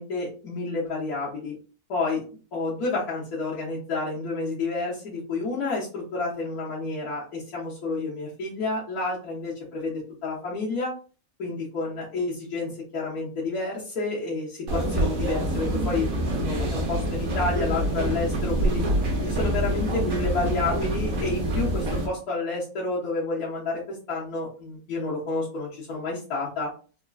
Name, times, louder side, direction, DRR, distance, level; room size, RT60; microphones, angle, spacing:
voice 1, 0.0-1.5 1.9-2.2 2.5-10.9 11.4-18.8 19.2-26.7, left 3 dB, 85° left, -7 dB, 1.5 m, -30 dB
sound 1, 14.7-22.1, right 1 dB, 70° right, 1.3 m, -26 dB
4.3 x 2.4 x 2.3 m, 0.37 s
omnidirectional pair, 1.6 m